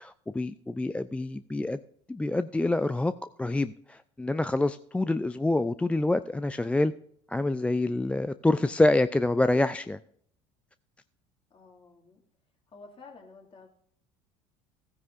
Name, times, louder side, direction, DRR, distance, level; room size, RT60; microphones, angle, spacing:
voice 1, 0.0-1.8 2.1-3.1 3.4-6.9 7.3-10.0, left 2 dB, 5° left, 13 dB, 0.3 m, -26 dB
voice 2, 11.5-12.2 12.7-13.7, left 4 dB, 35° left, 1 dB, 2.5 m, -51 dB
15.5 x 9.7 x 2.6 m, 0.64 s
hypercardioid pair, 70°, 16 cm